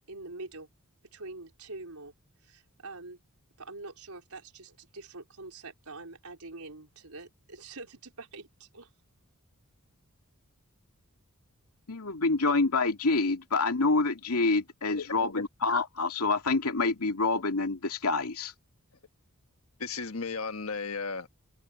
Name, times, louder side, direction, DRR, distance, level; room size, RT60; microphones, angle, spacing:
voice 1, 0.1-0.7 1.0-2.1 2.4-3.2 3.6-8.9, right 3 dB, 85° right, 4.3 m, -45 dB
voice 2, 11.9-18.5, left 3 dB, 90° left, 2.5 m, -27 dB
voice 3, 14.8-15.4 19.8-21.3, left 4 dB, 70° left, 1.5 m, -35 dB
open air
head